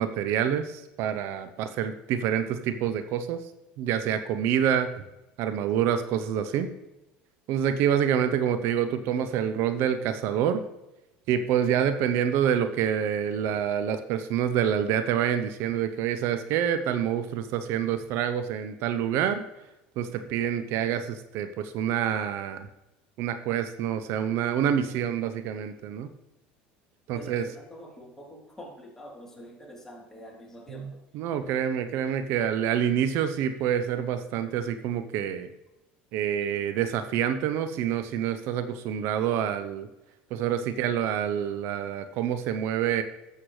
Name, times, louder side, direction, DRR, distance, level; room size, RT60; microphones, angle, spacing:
voice 1, 0.0-3.4 3.8-4.9 5.4-6.7 7.5-10.6 11.3-19.4 20.0-22.7 23.2-26.1 27.1-27.4 30.7-30.9 31.1-35.5 36.1-39.9 40.3-43.0, right 9 dB, 65° right, 10 dB, 0.7 m, -27 dB
voice 2, 27.1-31.0 38.2-38.4, equal, 10° left, -3 dB, 3.2 m, -46 dB
12.0 x 7.9 x 3.2 m, 0.97 s
supercardioid pair, 90°, 5 cm